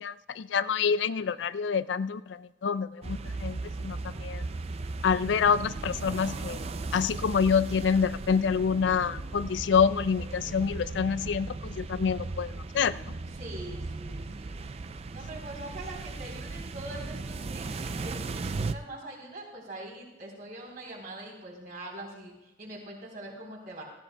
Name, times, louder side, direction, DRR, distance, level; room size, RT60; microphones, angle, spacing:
voice 1, 0.0-2.2 2.6-3.6 3.8-4.0 4.2-4.4 5.0-6.6 6.9-11.5 11.8-12.9, left 6 dB, 80° left, 15 dB, 0.4 m, -26 dB
sound 1, 3.0-18.7, right 3 dB, 35° right, 0.4 m, -37 dB
voice 2, 13.3-14.7 15.1-23.8, right 1 dB, 50° right, 0 dB, 3.8 m, -43 dB
17.5 x 14.5 x 2.3 m, 1.1 s
head